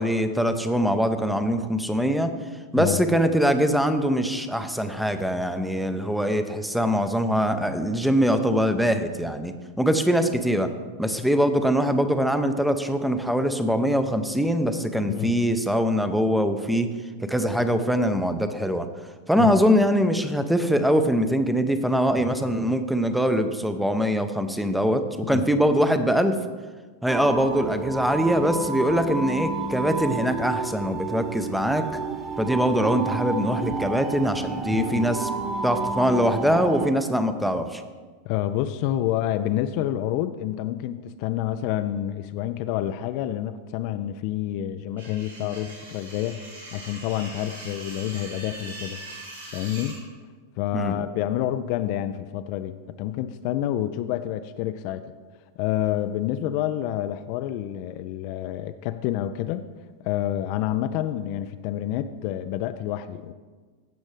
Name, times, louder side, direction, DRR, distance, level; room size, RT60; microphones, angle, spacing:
voice 1, 0.0-2.3 2.7-10.7 11.0-16.9 17.2-18.9 19.3-26.4 27.0-31.8 32.4-35.3 35.6-37.8 50.7-50.9, equal, ahead, 9 dB, 0.6 m, -23 dB
sound 1, 27.1-36.9, right 3 dB, 25° right, 1.4 m, -30 dB
voice 2, 34.7-35.1 38.3-46.4 46.7-49.0 49.5-50.0 50.6-55.1 55.6-59.6 60.0-63.3, left 12 dB, 45° left, 10 dB, 0.4 m, -28 dB
sound 2, 45.0-50.0, right 2 dB, 75° right, 3.1 m, -41 dB
15.5 x 6.2 x 3.3 m, 1.4 s
figure-of-eight pair, 90°, 0 cm